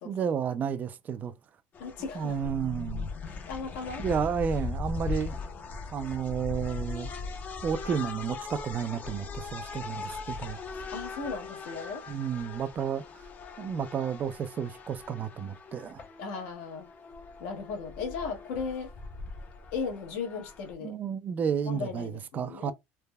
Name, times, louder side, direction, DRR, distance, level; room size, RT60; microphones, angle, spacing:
voice 1, 0.0-1.3 2.1-3.1 4.0-5.4 5.9-7.1 7.6-10.6 12.1-13.0 13.6-16.0 20.8-22.7, right 7 dB, 30° right, 0.3 m, -31 dB
sound 1, 1.7-20.7, left 4 dB, 30° left, 0.5 m, -40 dB
voice 2, 1.8-2.5 3.2-4.0 10.9-12.0 16.2-16.9 17.4-18.9 19.7-21.0 21.7-22.7, left 5 dB, 80° left, 1.1 m, -36 dB
3.3 x 2.1 x 2.2 m
supercardioid pair, 120°, 5 cm